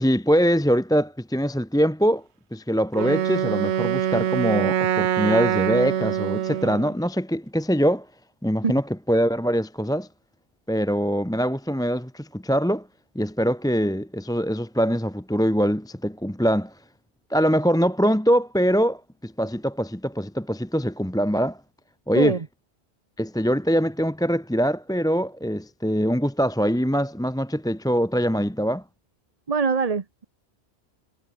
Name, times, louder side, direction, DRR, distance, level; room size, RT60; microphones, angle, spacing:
voice 1, 0.0-2.2 2.5-8.1 8.4-10.1 10.7-12.9 13.1-16.7 17.3-21.6 22.1-22.3 23.2-28.8, equal, 5° left, 0.9 m, -23 dB
Wind instrument woodwind instrument, 2.9-6.9, right 10 dB, 80° right, 1.1 m, -24 dB
voice 2, 22.1-22.5 29.5-30.2, right 5 dB, 35° right, 1.0 m, -23 dB
omnidirectional pair, 1.1 m